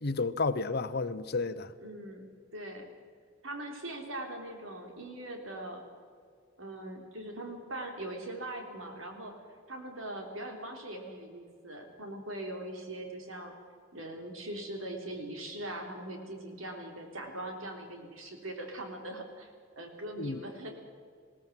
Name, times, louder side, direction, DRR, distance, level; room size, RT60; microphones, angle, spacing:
voice 1, 0.0-1.7 20.2-20.4, left 3 dB, 55° left, 0.9 m, -31 dB
voice 2, 1.8-2.3 2.5-2.9 3.4-5.8 6.6-9.4 9.7-13.5 13.9-20.7, right 1 dB, 85° right, 3.7 m, -41 dB
20.5 x 17.5 x 7.7 m
head